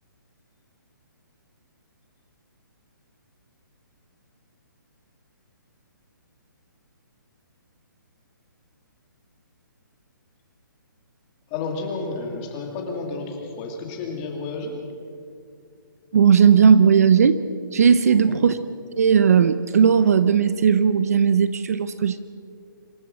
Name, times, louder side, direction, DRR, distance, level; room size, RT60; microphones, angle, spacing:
voice 1, 11.5-14.8 18.1-18.4, left 3 dB, 15° left, 1 dB, 2.4 m, -31 dB
voice 2, 16.1-17.4 17.7-18.6 19.0-22.2, right 7 dB, 45° right, 14 dB, 0.7 m, -16 dB
26.0 x 13.5 x 7.6 m, 2.3 s
hypercardioid pair, 175°, 11 cm